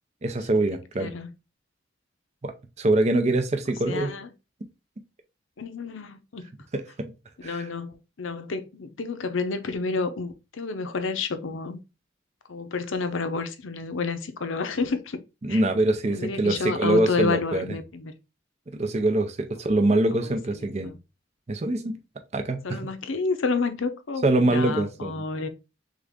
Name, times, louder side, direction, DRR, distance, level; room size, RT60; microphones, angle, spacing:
voice 1, 0.2-1.1 2.4-4.1 6.7-7.1 7.4-7.7 15.4-17.6 18.7-20.9 21.5-22.0 22.3-22.8 24.2-25.2, right 2 dB, 35° right, 0.5 m, -24 dB
voice 2, 1.0-1.3 3.9-4.3 5.6-6.5 7.4-11.8 12.5-15.2 15.5-15.6 16.1-18.1 20.2-20.4 20.8-21.0 22.6-25.5, left 4 dB, 90° left, 0.7 m, -30 dB
3.7 x 3.5 x 3.5 m
head